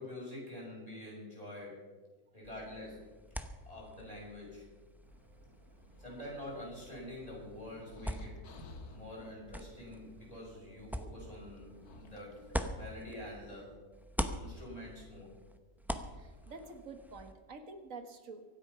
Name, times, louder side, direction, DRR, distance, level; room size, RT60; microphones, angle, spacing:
voice 1, 0.0-1.9 2.3-3.1 3.7-4.7 6.0-8.4 8.9-13.7 14.4-15.3, left 1 dB, 25° left, -4 dB, 6.6 m, -46 dB
sound 1, 2.4-13.6 13.9-17.3, equal, ahead, 0.5 m, -44 dB
sound 2, 5.0-13.8, right 2 dB, 85° right, 6.1 m, -61 dB
sound 3, 6.0-9.1 10.5-10.6 11.6-13.4 14.5-15.0 16.0-16.1 16.4-16.8, left 3 dB, 80° left, 1.8 m, -56 dB
voice 2, 16.1-18.4, right 3 dB, 60° right, 7 dB, 1.8 m, -48 dB
24.5 x 8.9 x 5.6 m, 1.3 s
omnidirectional pair, 1.6 m